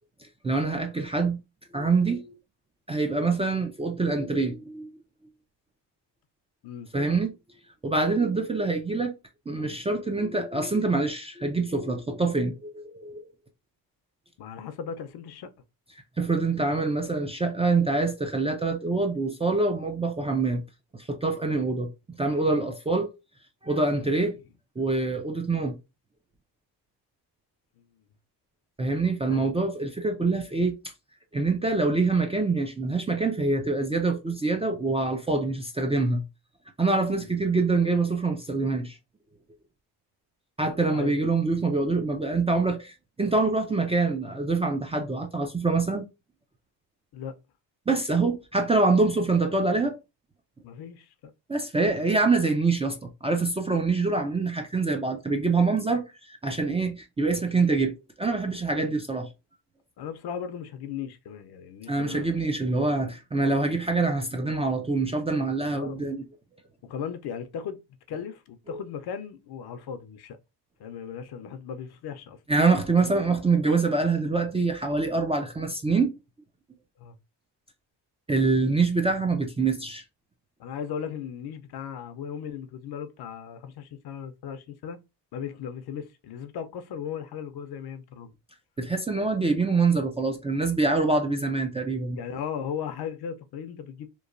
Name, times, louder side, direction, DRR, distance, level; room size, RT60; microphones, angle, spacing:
voice 1, 0.4-1.4 1.7-2.3 2.9-4.9 6.9-7.3 7.8-9.1 9.5-13.3 16.2-20.6 20.9-21.9 22.2-23.1 23.6-24.4 24.8-25.8 28.8-30.7 31.3-36.2 36.8-39.0 40.6-42.9 43.2-46.0 47.9-50.0 51.5-59.3 61.9-66.2 68.7-68.8 72.5-76.1 78.3-80.0 88.8-92.2, right 3 dB, 15° right, 0.3 m, -25 dB
voice 2, 14.4-15.5 29.3-29.5 37.1-37.3 40.9-41.2 47.1-47.4 50.6-51.3 58.8-59.0 60.0-62.4 65.7-66.0 66.8-67.8 68.1-70.4 70.8-72.4 77.0-77.2 80.6-85.0 85.3-88.3 91.2-91.3 92.2-94.1, left 7 dB, 60° left, 0.6 m, -37 dB
3.0 x 2.1 x 2.4 m
cardioid pair, 100°, 43 cm